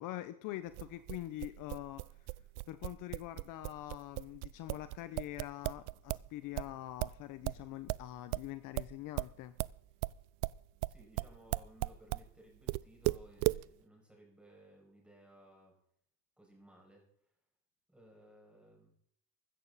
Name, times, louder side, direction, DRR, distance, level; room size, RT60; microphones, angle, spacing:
voice 1, 0.0-2.0 2.7-9.5, left 15 dB, 55° left, 12 dB, 0.9 m, -44 dB
sound 1, 0.7-6.3 6.6-12.3 12.7-13.6, right 23 dB, 70° right, 0.5 m, -36 dB
voice 2, 10.9-15.8 16.4-17.0 17.9-18.9, right 1 dB, 5° right, -2 dB, 6.1 m, -60 dB
15.5 x 13.5 x 4.1 m, 0.66 s
cardioid pair, 145°, 38 cm